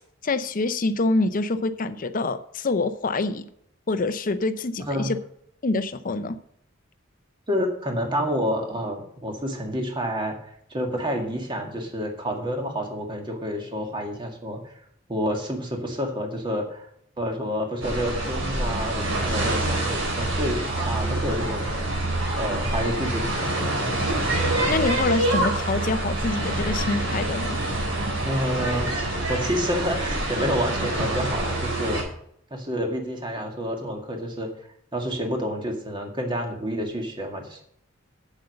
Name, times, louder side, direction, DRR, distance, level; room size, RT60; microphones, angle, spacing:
voice 1, 0.2-3.5 3.9-5.2 5.6-6.4 24.6-27.6, left 3 dB, 45° left, 11 dB, 0.7 m, -26 dB
voice 2, 4.8-5.1 7.5-10.4 10.7-14.7 15.1-16.9 17.2-21.7 22.4-23.8 28.2-32.0 32.5-34.5 34.9-37.6, equal, 25° right, 2 dB, 2.0 m, -29 dB
sound 1, 17.8-32.0, right 1 dB, 85° right, 4.5 m, -26 dB
8.3 x 7.9 x 6.5 m, 0.68 s
head